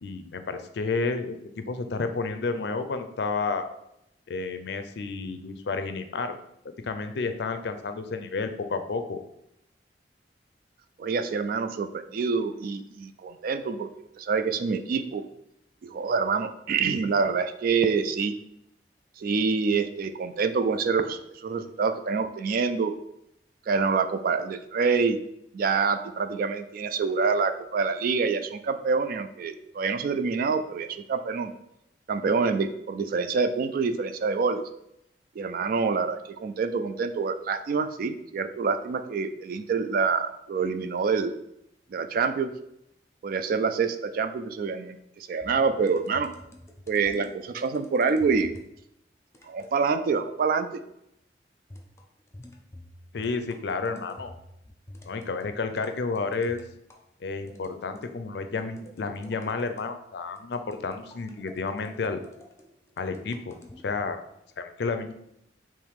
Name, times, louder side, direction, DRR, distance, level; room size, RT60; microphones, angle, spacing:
voice 1, 0.0-3.7 4.3-6.3 6.8-9.2 53.1-54.3 55.1-56.6 57.2-62.2 63.0-63.5 63.8-64.2 64.6-65.1, left 4 dB, 70° left, 8 dB, 0.5 m, -31 dB
voice 2, 11.0-13.9 14.2-15.2 15.8-18.4 19.2-22.9 23.7-25.2 25.5-31.5 32.1-34.6 35.4-41.3 41.9-42.5 43.2-46.3 46.9-48.5 49.5-50.7, right 5 dB, 55° right, 9 dB, 0.3 m, -26 dB
sound 1, 45.4-48.7 49.3-49.8 51.7-57.0 57.5-58.1 58.6-59.9 60.4-64.0, left 1 dB, 15° left, 0.6 m, -48 dB
3.5 x 3.1 x 4.7 m, 0.79 s
head